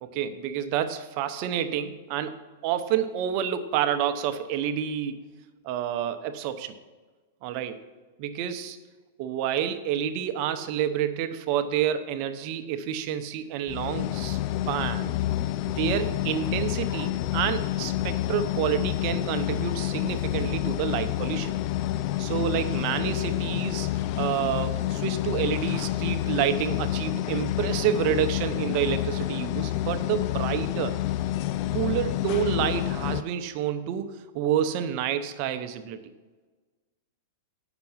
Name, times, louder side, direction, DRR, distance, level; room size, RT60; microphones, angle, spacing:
voice 1, 0.0-5.2 5.6-6.7 7.4-7.8 8.2-8.8 9.2-14.4 14.7-15.1 15.8-21.5 22.2-31.0 31.7-36.0, right 9 dB, 45° right, 9 dB, 0.8 m, -29 dB
sound 1, 13.7-33.2, left 13 dB, 45° left, 0.3 m, -28 dB
8.9 x 6.0 x 5.7 m, 1.3 s
supercardioid pair, 145°, 0 cm